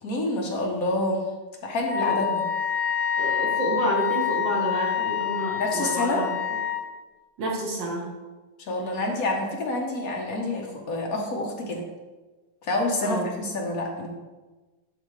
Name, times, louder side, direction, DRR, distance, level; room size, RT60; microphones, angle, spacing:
voice 1, 0.0-1.2 1.6-2.4 5.6-6.2 8.6-11.8 12.6-14.1, left 2 dB, 55° left, 1 dB, 1.4 m, -27 dB
Wind instrument woodwind instrument, 1.8-6.8, left 9 dB, 45° right, 1.6 m, -27 dB
voice 2, 3.2-6.6 7.4-8.1 13.0-13.4, right 2 dB, 85° right, -3 dB, 2.3 m, -29 dB
11.0 x 4.8 x 3.2 m, 1.2 s
omnidirectional pair, 2.0 m